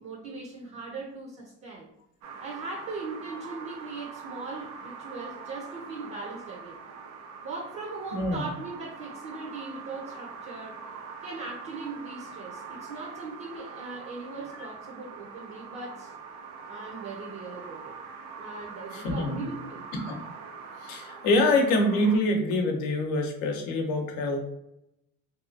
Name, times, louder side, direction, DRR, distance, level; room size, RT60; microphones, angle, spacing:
voice 1, 0.0-1.9 2.4-6.8 7.4-10.8 11.2-16.1 16.7-18.0 18.4-19.9, right 3 dB, 45° right, -1 dB, 0.7 m, -39 dB
sound 1, 2.2-22.2, right 5 dB, 85° right, 0.6 m, -43 dB
voice 2, 8.1-8.5 18.9-19.5 19.9-20.1 20.8-24.4, left 1 dB, 80° left, 3 dB, 0.7 m, -25 dB
2.7 x 2.3 x 2.6 m, 0.81 s
supercardioid pair, 70°, 34 cm